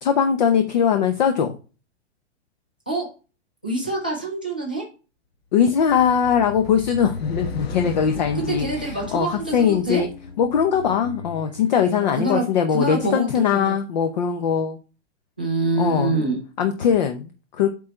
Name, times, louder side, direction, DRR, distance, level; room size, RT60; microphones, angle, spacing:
voice 1, 0.0-1.5 5.5-10.1 10.4-14.8 15.8-16.2 16.6-17.7, left 7 dB, 40° left, 6 dB, 0.7 m, -21 dB
voice 2, 3.6-4.8 8.3-10.1 11.8-13.7 15.4-16.4, right 2 dB, 10° right, -4 dB, 0.3 m, -26 dB
sound 1, 5.7-12.2, left 4 dB, 60° left, 1.2 m, -35 dB
8.5 x 3.9 x 4.3 m, 0.34 s
hypercardioid pair, 175°, 35 cm